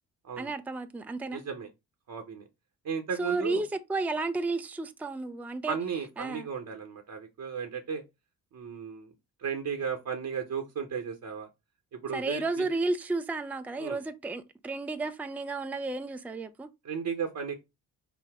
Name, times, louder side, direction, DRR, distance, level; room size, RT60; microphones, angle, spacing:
voice 1, 0.4-1.4 3.2-5.8 6.2-6.5 12.1-16.7, right 3 dB, 5° right, 0.5 m, -32 dB
voice 2, 1.3-1.7 2.1-2.5 2.8-3.6 5.7-8.0 8.5-9.1 9.4-11.5 11.9-12.7 13.8-14.0 16.8-17.5, right 6 dB, 50° right, 1.0 m, -34 dB
5.9 x 2.0 x 3.6 m
hypercardioid pair, 50°, 40 cm